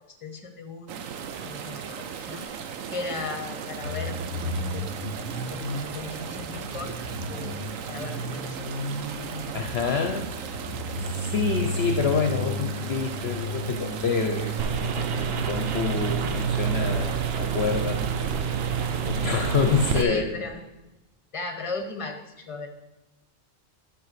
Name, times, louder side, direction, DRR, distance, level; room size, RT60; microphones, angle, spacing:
voice 1, 0.2-1.0 1.4-4.2 4.4-4.9 5.5-7.0 7.3-8.6 19.9-20.6 21.3-22.7, left 3 dB, 25° left, 5 dB, 1.1 m, -36 dB
sound 1, 0.9-20.0, right 7 dB, 85° right, 1.1 m, -37 dB
sound 2, 3.8-17.0, equal, 40° right, 3.1 m, -34 dB
voice 2, 9.5-10.3 11.0-18.0 19.0-20.3, left 5 dB, 55° left, 4 dB, 0.9 m, -27 dB
sound 3, 14.6-20.0, right 7 dB, 55° right, 0.8 m, -28 dB
11.0 x 4.9 x 6.8 m, 1.0 s
omnidirectional pair, 1.4 m